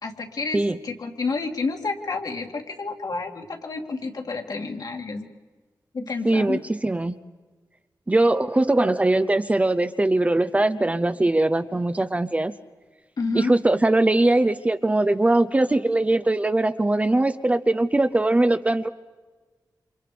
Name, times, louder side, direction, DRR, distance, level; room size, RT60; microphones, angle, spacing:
voice 1, 0.0-5.3 5.9-6.6 13.2-13.5, left 4 dB, 60° left, 3 dB, 2.5 m, -30 dB
voice 2, 6.2-7.1 8.1-12.5 13.3-18.9, right 2 dB, 20° right, 11 dB, 0.7 m, -21 dB
29.0 x 27.0 x 5.1 m, 1.3 s
wide cardioid pair, 155°, 7 cm